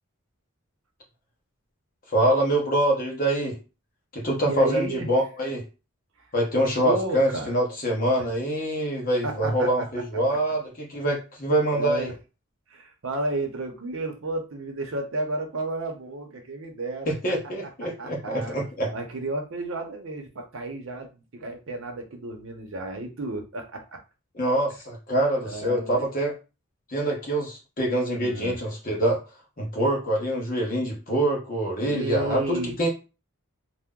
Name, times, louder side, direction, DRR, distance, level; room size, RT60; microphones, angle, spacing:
voice 1, 2.1-3.6 4.1-5.6 6.3-12.1 17.1-18.9 24.3-26.3 26.9-29.2 29.6-32.9, right 1 dB, 40° left, -1 dB, 1.0 m, -25 dB
voice 2, 4.4-5.1 6.8-7.6 9.2-10.0 10.3-10.5 11.7-12.1 12.7-17.1 17.8-18.6 18.9-24.0 25.4-26.0 28.1-28.6 31.8-32.8, right 2 dB, 65° right, 4 dB, 0.7 m, -32 dB
2.8 x 2.1 x 3.6 m, 0.31 s
head